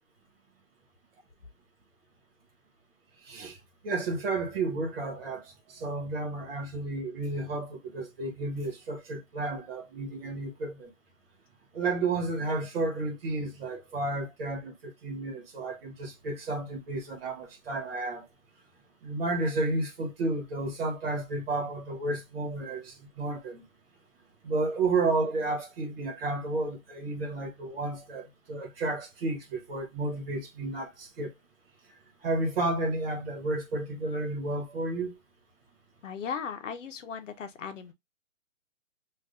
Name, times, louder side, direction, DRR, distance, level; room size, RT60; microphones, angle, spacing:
voice 1, 3.2-3.6 3.8-10.9 11.7-18.2 19.0-23.6 24.4-31.3 32.2-35.2, right 2 dB, 45° right, 1.4 m, -32 dB
voice 2, 36.0-37.9, left 6 dB, 65° left, 0.8 m, -37 dB
3.4 x 2.6 x 2.5 m
hypercardioid pair, 150°, 40 cm